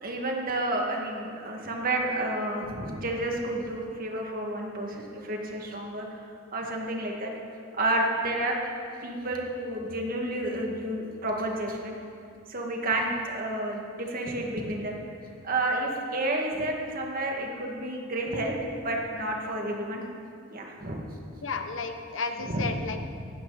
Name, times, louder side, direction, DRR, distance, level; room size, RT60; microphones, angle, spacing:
voice 1, 0.0-6.2 6.5-7.3 7.8-8.6 9.0-12.0 12.5-15.0 15.4-20.0 20.5-21.0 22.5-22.7, right 1 dB, 45° right, 0 dB, 2.2 m, -30 dB
voice 2, 21.4-23.0, left 4 dB, 70° left, 6 dB, 1.1 m, -33 dB
18.0 x 16.0 x 4.2 m, 2.4 s
head